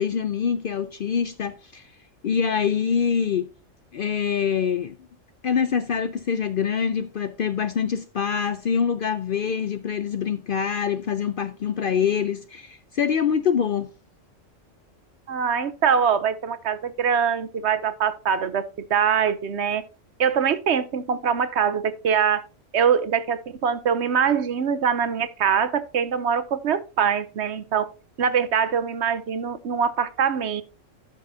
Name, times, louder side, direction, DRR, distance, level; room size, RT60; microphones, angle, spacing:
voice 1, 0.0-1.9 2.2-3.5 3.9-5.0 5.4-13.9, left 7 dB, 60° left, 0.6 m, -25 dB
voice 2, 15.3-18.6 18.9-19.8 20.2-22.4 22.7-27.9 28.2-30.6, right 7 dB, 60° right, 1.0 m, -23 dB
14.5 x 6.2 x 2.7 m
omnidirectional pair, 1.3 m